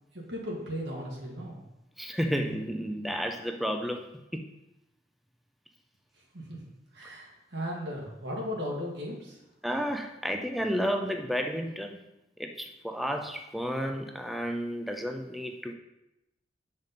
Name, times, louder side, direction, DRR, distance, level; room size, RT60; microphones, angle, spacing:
voice 1, 0.1-1.7 6.2-6.6 6.9-9.4, equal, 80° right, -2 dB, 1.8 m, -37 dB
voice 2, 2.0-4.0 4.3-4.4 9.6-12.0 12.4-15.7, equal, ahead, 4 dB, 0.4 m, -31 dB
6.7 x 5.3 x 4.1 m, 0.91 s
head